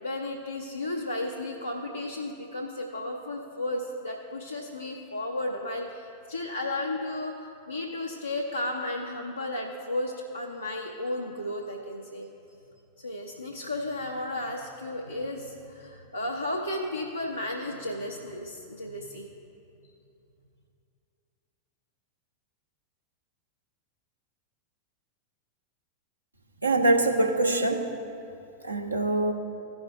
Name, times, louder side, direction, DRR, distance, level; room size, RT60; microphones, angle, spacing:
voice 1, 0.0-12.3 13.0-19.3, left 1 dB, 85° left, -1 dB, 0.6 m, -34 dB
voice 2, 26.6-27.8 28.6-29.3, right 2 dB, 85° right, 1 dB, 0.8 m, -23 dB
16.0 x 6.1 x 2.5 m, 2.7 s
figure-of-eight pair, 90°, 0 cm